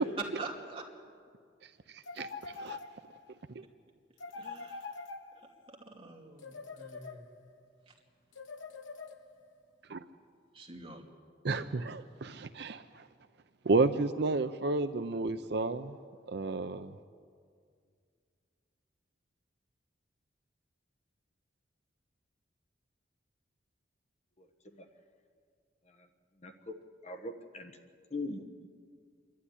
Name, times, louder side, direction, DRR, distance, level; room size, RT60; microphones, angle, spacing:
voice 1, 0.2-0.8 4.3-5.1 5.3-7.3 7.9-8.0 10.5-11.0 11.4-11.9, right 3 dB, 30° right, 0 dB, 2.7 m, -45 dB
voice 2, 1.6-2.8 3.5-3.6 9.9-10.0 11.4-13.1 13.6-15.9 16.3-16.9, right 3 dB, 60° right, 10 dB, 0.6 m, -32 dB
sound 1, 2.0-3.3 4.2-5.7 6.4-7.6 8.3-9.5, left 4 dB, 75° left, 1.2 m, -45 dB
voice 3, 26.4-26.7 27.0-27.8 28.1-28.7, left 2 dB, 35° left, 5 dB, 1.3 m, -40 dB
26.5 x 12.0 x 10.0 m, 2.1 s
head